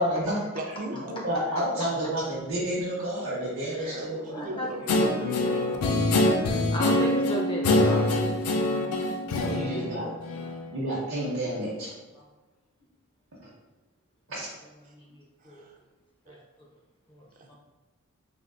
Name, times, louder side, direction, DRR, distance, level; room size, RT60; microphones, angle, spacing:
voice 1, 0.0-0.4 1.0-4.6 9.4-10.1 10.7-11.9 14.3-14.5, equal, 70° right, -8 dB, 0.7 m, -30 dB
voice 2, 0.5-1.0 3.7-5.8 15.4-15.7 16.3-16.4 17.4-17.5, right 2 dB, 35° right, 2 dB, 0.3 m, -37 dB
voice 3, 4.3-4.7 6.2-8.2 9.7-10.0 12.2-12.3 14.8-15.6 16.3-16.4 17.1-17.6, equal, 20° left, -2 dB, 0.5 m, -36 dB
Guitar, 4.9-10.7, left 1 dB, 85° left, 0.4 m, -25 dB
3.5 x 2.4 x 2.3 m, 1.2 s
head